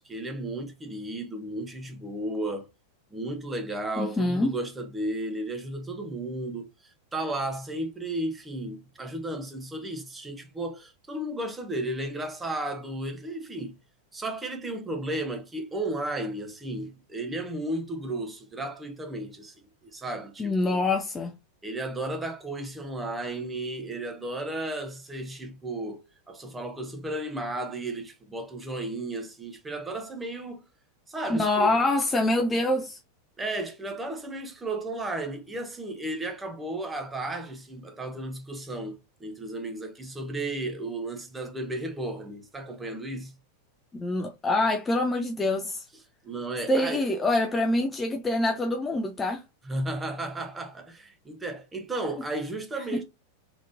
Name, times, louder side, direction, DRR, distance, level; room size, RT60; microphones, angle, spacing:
voice 1, 0.0-2.7 3.1-13.8 14.1-19.6 19.9-20.8 21.6-30.6 31.1-31.8 33.4-43.3 46.2-47.0 49.7-53.0, right 1 dB, 10° right, 1.0 m, -34 dB
voice 2, 4.0-4.5 20.4-21.3 31.3-33.0 43.9-45.9 46.7-49.4, left 2 dB, 15° left, 0.5 m, -25 dB
3.7 x 3.5 x 2.7 m
figure-of-eight pair, 90°, 0 cm